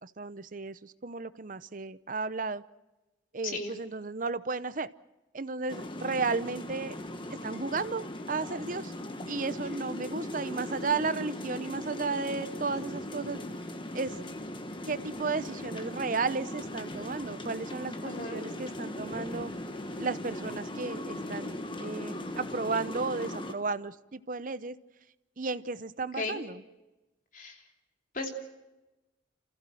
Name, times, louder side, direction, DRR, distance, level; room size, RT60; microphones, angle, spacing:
voice 1, 0.0-2.6 3.3-4.9 5.3-7.0 7.4-8.9 9.3-13.4 13.9-14.2 14.9-19.5 20.0-24.7 25.4-26.6, right 4 dB, 45° right, 15 dB, 0.7 m, -34 dB
sound 1, 5.7-23.5, left 1 dB, 25° left, 1.4 m, -39 dB
voice 2, 18.0-18.4 26.2-26.4 27.3-27.6 28.1-28.3, left 3 dB, 45° left, 3 dB, 3.2 m, -35 dB
28.0 x 15.5 x 7.8 m, 1.0 s
head